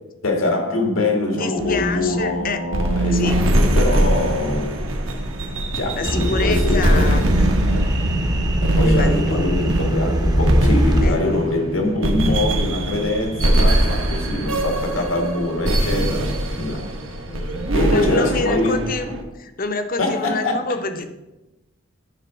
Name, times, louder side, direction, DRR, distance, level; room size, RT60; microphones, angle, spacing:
voice 1, 0.2-4.8 5.7-7.2 7.7-7.9 8.6-16.9 17.7-18.8 20.0-20.6, left 2 dB, 85° left, 3 dB, 1.7 m, -23 dB
voice 2, 1.4-2.6 3.1-3.4 6.0-7.5 8.8-9.7 11.0-11.3 14.9-15.0 17.3-17.6 17.9-21.1, left 3 dB, 45° left, 8 dB, 0.8 m, -27 dB
sound 1, 1.6-19.2, right 1 dB, 80° right, 1.3 m, -22 dB
sound 2, 6.0-11.1, equal, 20° right, 0.7 m, -22 dB
10.0 x 4.0 x 6.2 m, 1.0 s
head